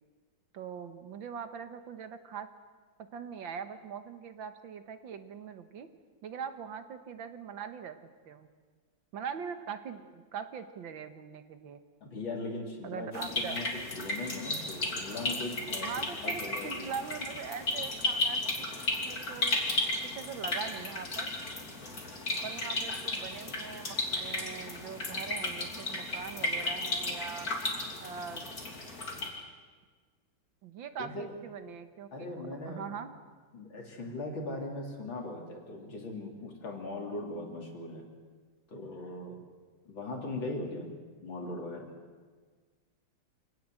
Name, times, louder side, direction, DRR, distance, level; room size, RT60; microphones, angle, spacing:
voice 1, 0.5-2.5 3.0-5.9 6.2-8.0 8.3-8.5 9.1-11.8 12.8-13.6 15.8-18.7 19.0-19.6 20.0-21.3 22.4-27.5 28.0-28.5 30.6-33.1, right 7 dB, 80° right, 9 dB, 2.1 m, -42 dB
voice 2, 12.0-13.7 13.9-15.9 16.2-16.9 31.0-31.3 32.1-32.9 33.5-38.1 38.7-39.4 39.9-41.9, left 2 dB, 80° left, 1 dB, 4.1 m, -39 dB
sound 1, 13.1-29.3, left 2 dB, 50° left, 3.6 m, -34 dB
26.0 x 18.5 x 7.8 m, 1.5 s
omnidirectional pair, 2.1 m